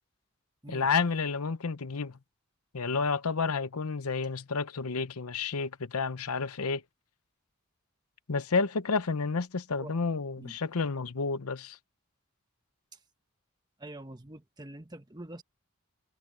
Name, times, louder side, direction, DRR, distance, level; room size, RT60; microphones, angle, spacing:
voice 1, 0.7-2.2 2.7-6.8 8.3-11.8, left 4 dB, 85° left, 0.8 m, -30 dB
voice 2, 13.8-15.4, right 1 dB, 20° right, 1.4 m, -45 dB
head